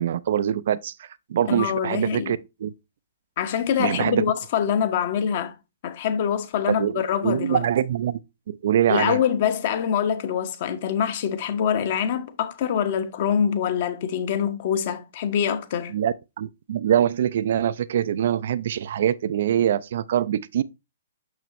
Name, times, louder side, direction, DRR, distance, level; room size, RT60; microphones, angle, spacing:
voice 1, 0.0-2.7 3.8-4.2 6.8-8.2 8.5-9.2 15.9-20.6, right 10 dB, 55° right, 0.3 m, -24 dB
voice 2, 1.5-2.3 3.4-5.5 5.8-7.6 8.9-15.9, left 8 dB, 45° left, 1.0 m, -25 dB
6.3 x 6.2 x 3.0 m
figure-of-eight pair, 115°, 0 cm